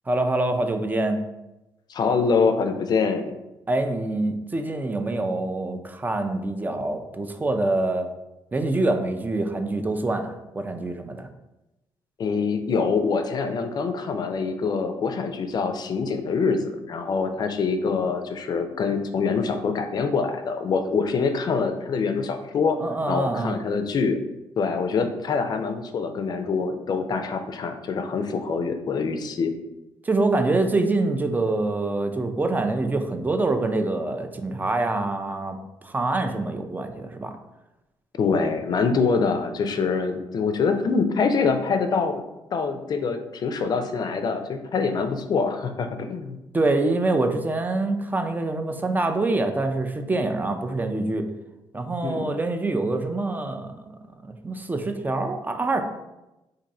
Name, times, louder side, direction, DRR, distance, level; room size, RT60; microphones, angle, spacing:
voice 1, 0.1-1.2 3.7-8.1 8.5-11.3 22.8-23.6 30.0-35.6 35.8-37.3 46.5-51.3 51.7-53.9 54.2-55.8, right 2 dB, 20° right, 6 dB, 0.4 m, -25 dB
voice 2, 1.9-3.3 12.2-22.8 23.1-24.2 24.6-29.5 38.2-42.2 42.5-46.4 52.0-52.3, left 5 dB, 50° left, 8 dB, 0.4 m, -25 dB
2.6 x 2.5 x 4.1 m, 0.96 s
cardioid pair, 75°, 9 cm